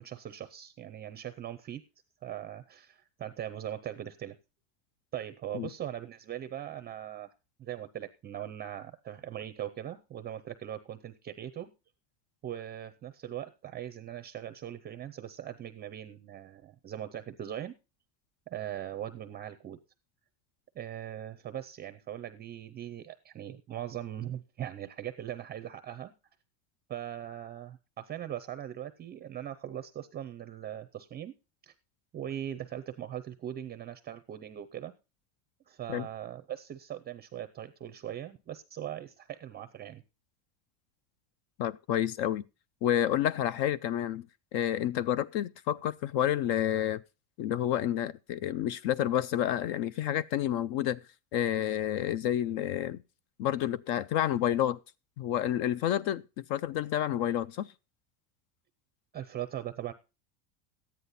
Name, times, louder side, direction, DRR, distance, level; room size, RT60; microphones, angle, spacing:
voice 1, 0.0-1.8 2.2-4.4 5.1-7.3 7.6-11.7 12.4-17.7 18.5-19.8 20.7-26.1 26.9-31.3 31.6-31.7 32.1-34.9 35.7-40.0 59.1-59.9, right 11 dB, 25° right, 0.5 m, -40 dB
voice 2, 41.6-42.4 42.8-44.3 44.5-47.0 47.4-51.0 51.3-53.0 53.4-54.8 55.2-57.7, left 11 dB, 55° left, 0.5 m, -29 dB
13.5 x 9.8 x 4.0 m
cardioid pair, 150°, 45 cm